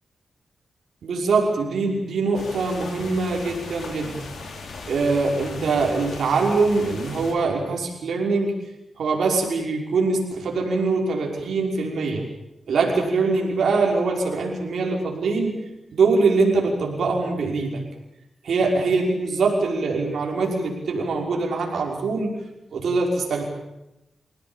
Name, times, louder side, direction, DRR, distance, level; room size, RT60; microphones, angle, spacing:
voice 1, 1.0-4.2 4.9-8.5 9.0-12.2 12.7-15.6 15.9-17.8 18.4-22.4 22.7-23.4, right 3 dB, 85° right, 0 dB, 5.7 m, -23 dB
sound 1, 2.3-7.3, left 3 dB, 85° left, 5.4 m, -38 dB
27.0 x 17.5 x 9.1 m, 0.90 s
wide cardioid pair, 115°, 0 cm